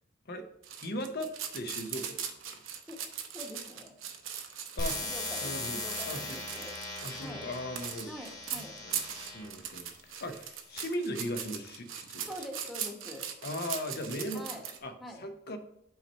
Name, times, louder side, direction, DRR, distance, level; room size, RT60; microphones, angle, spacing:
sound 1, 0.6-14.8, right 9 dB, 80° right, 0.8 m, -40 dB
voice 1, 0.8-2.4 4.8-5.0 5.4-5.8 6.1-6.4 7.0-8.1 8.8-9.0 9.3-12.2 13.4-14.4 14.8-15.6, left 1 dB, 55° left, 7 dB, 0.7 m, -38 dB
voice 2, 3.3-3.9 5.0-6.7 7.2-7.5 8.1-8.8 12.3-13.3 14.3-14.7 15.0-15.2, left 1 dB, ahead, 1 dB, 0.9 m, -44 dB
sound 2, 4.8-9.5 10.2-10.8, left 2 dB, 20° left, 1.6 m, -39 dB
5.7 x 4.3 x 5.4 m, 0.78 s
head